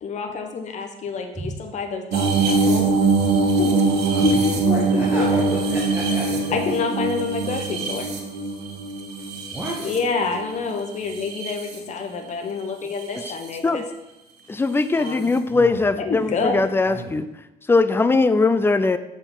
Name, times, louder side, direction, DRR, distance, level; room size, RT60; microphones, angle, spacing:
voice 1, 0.0-2.9 3.4-4.8 5.2-5.3 6.5-8.1 9.8-13.8 14.9-15.3 16.0-16.6, left 4 dB, 45° left, 4 dB, 1.0 m, -28 dB
sound 1, 2.1-10.4 11.0-11.8 13.0-13.3 15.1-15.2, right 3 dB, 85° right, 1.2 m, -22 dB
voice 2, 4.1-6.6 9.5-9.8 15.5-15.8 16.1-16.3 16.9-17.1, right 2 dB, 10° right, -5 dB, 1.3 m, -31 dB
voice 3, 14.5-17.3 17.7-19.0, left 3 dB, 15° left, 12 dB, 0.4 m, -20 dB
6.9 x 4.5 x 5.5 m, 0.98 s
cardioid pair, 110°, 17 cm